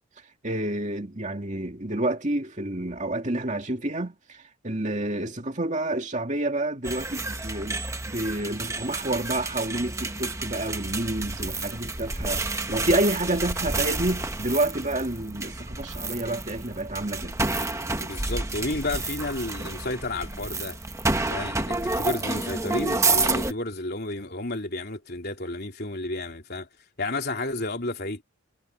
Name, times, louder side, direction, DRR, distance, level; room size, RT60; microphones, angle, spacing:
voice 1, 0.4-17.4, right 1 dB, 35° right, 2.3 m, -29 dB
sound 1, 6.8-23.5, right 3 dB, 15° right, 1.0 m, -30 dB
voice 2, 18.0-20.8 21.3-26.7 27.0-28.2, left 2 dB, 45° left, 3.6 m, -31 dB
head